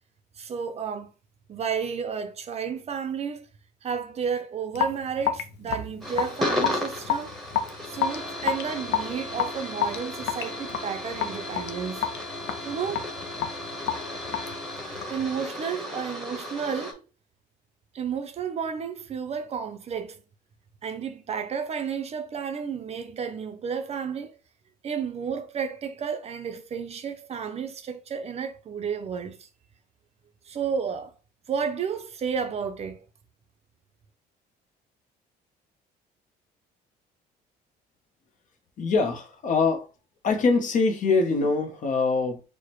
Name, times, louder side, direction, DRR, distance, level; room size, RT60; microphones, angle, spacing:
voice 1, 0.4-1.1 1.5-3.5 3.8-7.3 7.9-12.1 12.7-13.1 15.1-17.0 17.9-20.2 20.8-24.4 24.8-29.5 30.5-31.1 31.5-33.0, right 6 dB, 40° right, 0.5 m, -32 dB
Raindrop / Drip, 4.7-15.3, left 9 dB, 80° left, 0.5 m, -30 dB
sound 1, 6.0-16.9, left 1 dB, ahead, 1.0 m, -34 dB
voice 2, 38.8-39.9 40.2-42.4, left 4 dB, 50° left, 0.8 m, -23 dB
4.7 x 2.1 x 3.0 m
cardioid pair, 110°, 17 cm